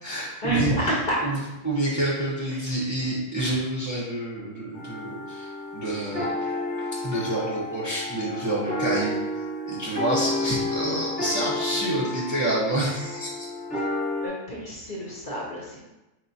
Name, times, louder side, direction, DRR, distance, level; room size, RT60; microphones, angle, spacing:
voice 1, 0.0-6.5 6.9-13.5, right 1 dB, 20° right, -6 dB, 0.6 m, -28 dB
sound 1, 4.7-14.3, left 2 dB, 5° left, 1.0 m, -31 dB
voice 2, 14.2-15.8, right 2 dB, 45° left, -4 dB, 0.8 m, -29 dB
4.7 x 3.1 x 2.7 m, 1.0 s
omnidirectional pair, 1.3 m